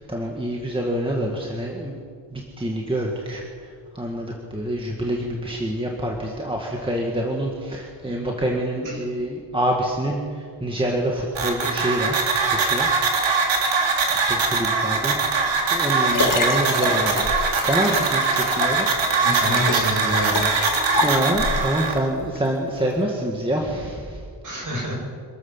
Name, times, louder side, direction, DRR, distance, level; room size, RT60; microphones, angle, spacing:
voice 1, 0.0-2.0 2.3-12.9 14.1-17.3 17.6-18.9 21.0-24.2, right 1 dB, 10° right, -1 dB, 2.0 m, -26 dB
sound 1, 11.4-22.0, right 4 dB, 75° right, 3.5 m, -22 dB
Liquid, 15.4-21.7 22.4-22.5, left 4 dB, 45° left, 2.1 m, -28 dB
voice 2, 19.2-20.5 24.4-24.9, equal, 45° right, -2 dB, 7.9 m, -27 dB
26.5 x 14.0 x 7.4 m, 2.1 s
wide cardioid pair, 160°, 45 cm